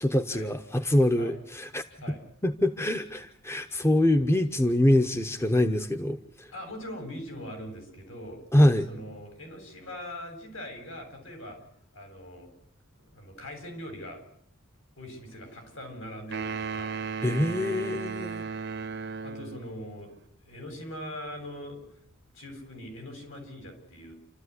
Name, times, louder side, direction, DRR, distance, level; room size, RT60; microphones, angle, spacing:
voice 1, 0.0-1.8 2.4-6.5 8.5-8.9 17.2-18.5, left 1 dB, 15° left, 7 dB, 1.0 m, -24 dB
voice 2, 6.5-8.4 8.9-11.6 11.9-12.5 13.1-14.2 15.0-17.0 19.2-20.1 20.4-21.8 22.3-24.1, left 1 dB, 70° left, 4 dB, 7.7 m, -41 dB
sound 1, 16.3-19.7, right 5 dB, 55° right, 1.0 m, -35 dB
28.5 x 13.5 x 9.8 m, 0.70 s
head